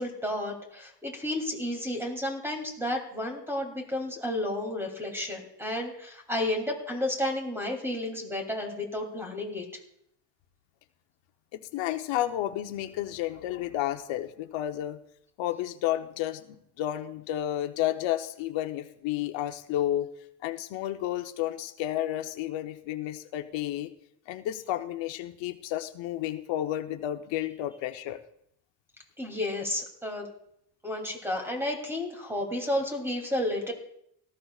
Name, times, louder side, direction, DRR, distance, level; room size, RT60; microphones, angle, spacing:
voice 1, 0.0-9.6 29.2-30.3 30.8-33.7, left 1 dB, 5° right, 2 dB, 2.9 m, -32 dB
voice 2, 11.5-15.0 15.4-16.4 16.8-20.1 20.4-23.9 24.3-28.2, left 13 dB, 85° left, 7 dB, 0.9 m, -31 dB
18.0 x 14.0 x 2.4 m, 0.73 s
cardioid pair, 145°, 44 cm